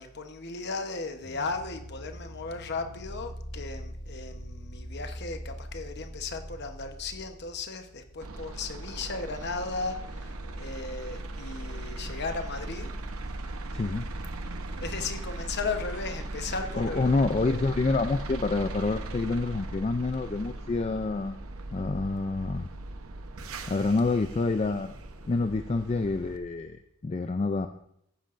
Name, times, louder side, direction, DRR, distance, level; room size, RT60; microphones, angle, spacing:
voice 1, 0.0-12.9 14.8-17.6, left 4 dB, 50° left, 6 dB, 1.0 m, -36 dB
sound 1, 1.2-8.4, equal, 85° left, 1.4 m, -43 dB
sound 2, 8.2-26.4, right 2 dB, 75° right, 0.9 m, -38 dB
voice 2, 13.7-14.1 16.8-21.4 21.7-22.7 23.7-24.9 25.2-27.7, left 3 dB, 30° left, 7 dB, 0.3 m, -27 dB
14.5 x 9.8 x 2.6 m, 0.74 s
head